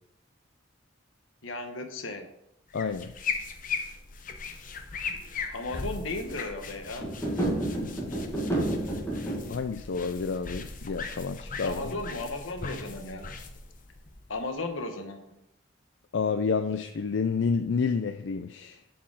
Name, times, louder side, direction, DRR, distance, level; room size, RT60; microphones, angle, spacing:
voice 1, 1.4-2.3 5.5-7.1 11.6-13.3 14.3-15.4, left 2 dB, 80° left, 6 dB, 1.2 m, -35 dB
voice 2, 2.7-3.1 9.5-11.9 16.1-18.8, left 5 dB, 65° left, 8 dB, 0.4 m, -29 dB
sound 1, 2.7-14.7, left 5 dB, 40° left, 0.8 m, -38 dB
sound 2, 7.0-9.5, right 1 dB, 15° left, 1.8 m, -30 dB
7.1 x 4.8 x 6.3 m, 0.82 s
head